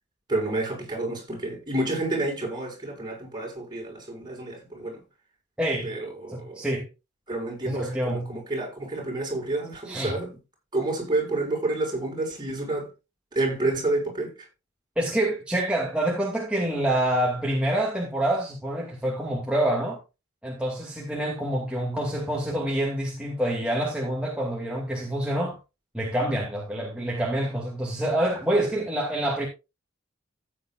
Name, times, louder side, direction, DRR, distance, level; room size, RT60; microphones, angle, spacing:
voice 1, 0.3-5.0 5.8-6.7 7.3-10.3 10.7-12.9 13.3-14.5, right 2 dB, 20° right, 6.4 m, -29 dB
voice 2, 5.6-5.9 6.3-6.9 7.7-8.3 9.9-10.2 15.0-20.0 20.4-25.6 25.9-29.5, right 1 dB, 5° right, 2.4 m, -27 dB
15.5 x 9.1 x 2.5 m
head